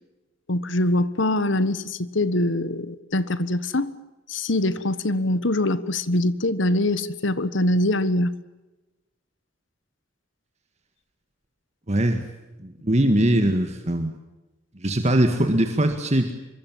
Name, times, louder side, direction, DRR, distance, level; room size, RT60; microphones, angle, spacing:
voice 1, 0.5-3.9 4.3-8.3, left 1 dB, 80° left, 16 dB, 1.4 m, -23 dB
voice 2, 11.9-12.2 12.6-14.1 14.8-16.3, right 1 dB, 35° right, 6 dB, 1.8 m, -21 dB
25.5 x 23.0 x 7.5 m, 1.0 s
head